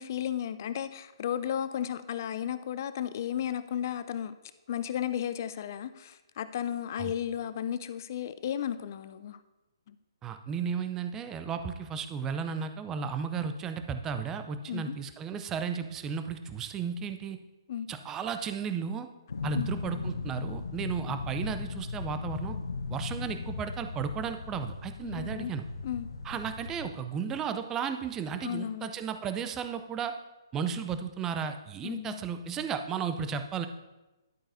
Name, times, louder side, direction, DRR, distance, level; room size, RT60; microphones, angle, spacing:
voice 1, 0.0-4.3 4.7-9.4 9.9-10.0 14.7-14.9 17.7-17.9 19.5-19.7 25.0-25.5 25.8-26.1 28.4-28.9 31.8-32.2, left 9 dB, 45° left, 13 dB, 0.4 m, -34 dB
voice 2, 10.2-17.4 17.9-19.1 19.4-22.6 22.9-25.6 26.2-30.1 30.5-33.7, right 6 dB, 15° right, 9 dB, 0.5 m, -34 dB
sound 1, 19.3-26.9, left 4 dB, 65° left, 0.8 m, -37 dB
11.0 x 8.7 x 2.6 m, 1.1 s
figure-of-eight pair, 130°, 2 cm